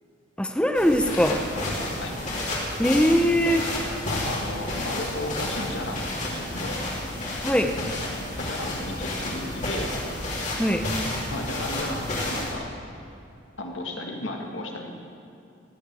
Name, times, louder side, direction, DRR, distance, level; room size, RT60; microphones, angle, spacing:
voice 1, 0.4-1.4 2.8-3.6 7.4-7.7 10.6-10.8, equal, 5° left, 5 dB, 0.8 m, -21 dB
sound 1, 0.7-12.5, left 1 dB, 35° left, 2.9 m, -31 dB
voice 2, 1.6-2.2 4.1-6.8 8.4-9.9 11.3-12.8 13.6-15.0, left 1 dB, 70° left, 2 dB, 1.9 m, -34 dB
18.0 x 6.7 x 8.9 m, 2.6 s
head